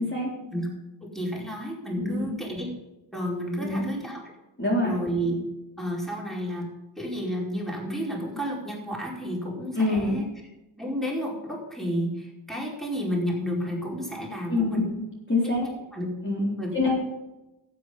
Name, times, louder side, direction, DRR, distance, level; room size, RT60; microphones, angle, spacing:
voice 1, 1.0-2.7 3.1-4.2 4.8-5.4 5.8-6.7 7.0-10.2 10.8-14.8 15.4-15.6 15.9-16.1 16.6-16.9, equal, ahead, -3 dB, 4.7 m, -31 dB
voice 2, 2.0-2.4 3.6-3.9 4.6-5.0 9.8-10.2 14.5-15.7 16.2-16.9, left 2 dB, 25° left, -4 dB, 4.0 m, -26 dB
12.5 x 9.1 x 5.2 m, 0.98 s
cardioid pair, 40°, 46 cm